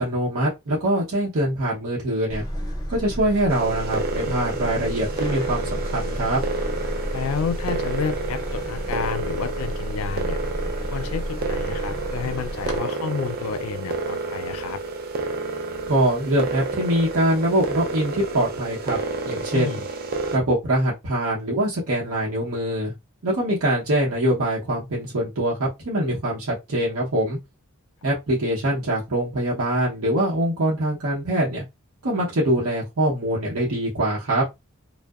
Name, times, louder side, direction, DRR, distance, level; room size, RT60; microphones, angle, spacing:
voice 1, 0.0-2.4 2.9-6.4 15.9-19.0 19.2-19.8 20.3-22.9 23.2-27.4 28.0-31.6 32.0-34.4, right 1 dB, 75° right, 0.8 m, -23 dB
sound 1, 2.3-12.8, equal, 15° left, 0.5 m, -31 dB
sound 2, 3.5-20.4, right 3 dB, 40° right, 0.3 m, -30 dB
voice 2, 7.1-10.4 10.9-14.8 19.5-19.8, left 6 dB, 75° left, 0.3 m, -30 dB
2.7 x 2.0 x 2.3 m
head